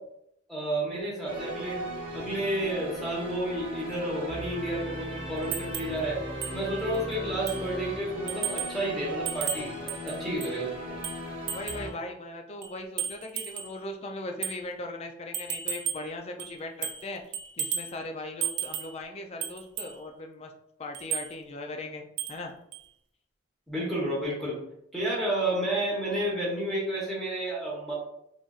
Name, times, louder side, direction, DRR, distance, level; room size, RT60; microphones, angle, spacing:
voice 1, 0.5-1.8 2.1-6.2 6.5-11.0 23.7-24.6 24.9-27.9, right 1 dB, ahead, -5 dB, 1.0 m, -31 dB
sound 1, 1.3-11.9, equal, 30° right, 0.9 m, -37 dB
sound 2, 5.5-6.0 6.4-6.6 6.9-7.0 7.5-7.7 8.3-8.8 9.3-10.6 11.0-11.9 12.6-13.8 14.4-14.6 15.3-16.1 16.4-17.1 17.3-18.0 18.4-19.0 19.4-20.0 20.9-21.3 22.2-22.4 22.7-22.8, right 9 dB, 55° right, 0.3 m, -34 dB
voice 2, 11.5-20.5 20.8-22.5, left 2 dB, 30° left, 4 dB, 0.3 m, -39 dB
3.9 x 2.5 x 2.3 m, 0.77 s
head